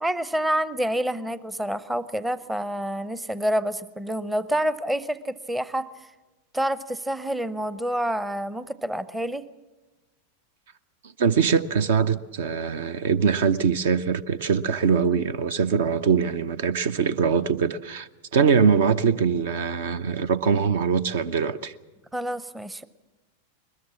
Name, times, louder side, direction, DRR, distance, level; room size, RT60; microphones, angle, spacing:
voice 1, 0.0-5.9 6.5-9.5 22.1-22.9, right 1 dB, 5° right, 0.7 m, -28 dB
voice 2, 11.2-21.7, right 6 dB, 55° right, 0.6 m, -22 dB
21.0 x 21.0 x 7.2 m
figure-of-eight pair, 90°, 0 cm